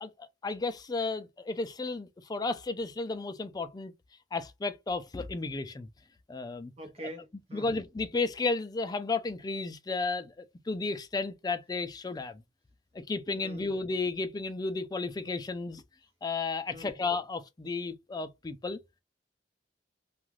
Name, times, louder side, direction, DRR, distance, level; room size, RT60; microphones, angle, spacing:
voice 1, 0.0-3.9 4.3-5.9 6.3-6.7 7.5-12.4 12.9-15.8 16.2-18.8, left 3 dB, 20° left, 0.3 m, -33 dB
voice 2, 6.8-7.8 13.3-13.7 16.7-17.0, right 1 dB, 35° right, 0.7 m, -44 dB
2.4 x 2.4 x 3.1 m
head